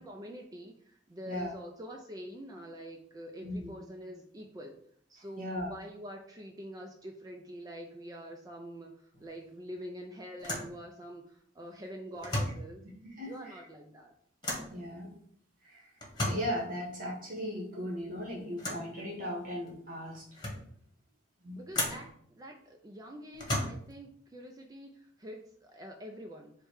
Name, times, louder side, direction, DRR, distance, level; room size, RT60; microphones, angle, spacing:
voice 1, 0.0-4.7 5.1-12.8 13.3-14.1 21.6-26.5, equal, 20° right, 2 dB, 0.4 m, -46 dB
voice 2, 5.4-5.7 13.2-13.6 14.7-15.1 15.6-15.9 16.2-20.2 21.4-21.6, equal, 50° right, -2 dB, 1.1 m, -37 dB
sound 1, 9.1-9.4 9.7-9.8 10.4-10.8 12.1-12.7 14.4-14.8 16.0-16.5 18.6-18.9 19.7-19.8 20.1-20.7 21.7-22.1 23.3-24.0, left 1 dB, 25° left, 1.1 m, -35 dB
4.8 x 2.1 x 4.7 m, 0.63 s
head